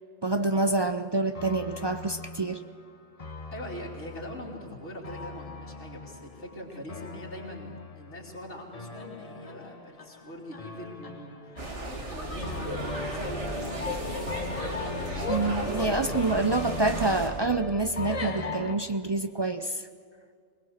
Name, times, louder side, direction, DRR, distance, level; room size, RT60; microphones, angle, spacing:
voice 1, 0.2-2.6 15.3-19.8, right 2 dB, 35° right, 8 dB, 0.4 m, -27 dB
sound 1, 1.3-18.7, left 3 dB, 35° left, 1.1 m, -38 dB
voice 2, 3.5-14.1 15.6-16.2, equal, 80° left, -4 dB, 3.4 m, -42 dB
sound 2, 11.6-17.3, right 1 dB, 85° right, 3.0 m, -35 dB
21.0 x 20.5 x 6.6 m, 2.2 s
omnidirectional pair, 1.2 m